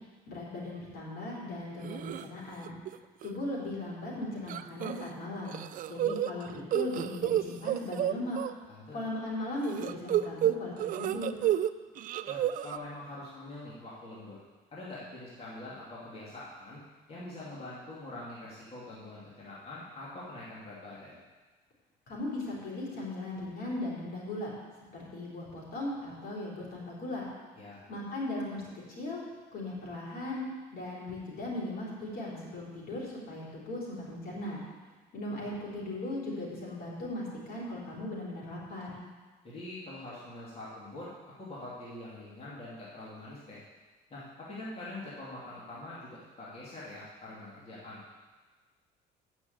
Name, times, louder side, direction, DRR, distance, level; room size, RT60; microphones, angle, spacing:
voice 1, 0.3-2.8 3.2-5.6 5.9-8.4 8.9-11.5 22.1-24.5 24.9-27.3 27.9-28.6 28.9-29.2 29.5-30.4 30.7-34.6 35.1-39.0, left 1 dB, 65° left, -5 dB, 4.0 m, -38 dB
sound 1, 1.8-2.2 2.6-3.0 3.2-3.3 4.5-5.1 5.5-8.5 9.6-11.7 12.0-12.8, right 12 dB, 55° right, 0.4 m, -30 dB
voice 2, 8.7-9.0 12.3-14.4 14.7-16.8 17.1-21.2 27.5-27.8 39.4-41.1 41.4-43.6 44.1-48.0, left 2 dB, 35° left, -8 dB, 2.6 m, -44 dB
8.8 x 6.4 x 7.9 m, 1.3 s
cardioid pair, 110°, 17 cm